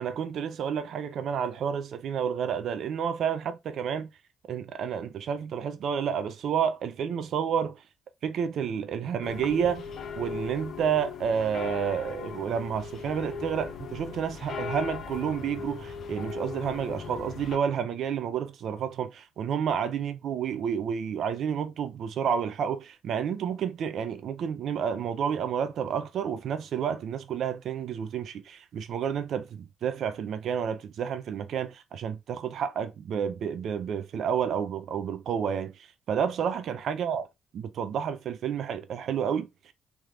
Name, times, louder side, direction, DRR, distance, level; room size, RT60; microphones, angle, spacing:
voice 1, 0.0-4.1 4.5-7.8 8.2-9.8 10.2-37.3 37.5-39.7, right 7 dB, 70° right, 0.5 m, -30 dB
sound 1, 9.2-17.6, left 6 dB, 60° left, 0.5 m, -38 dB
3.3 x 3.0 x 2.4 m
cardioid pair, 90°, 0 cm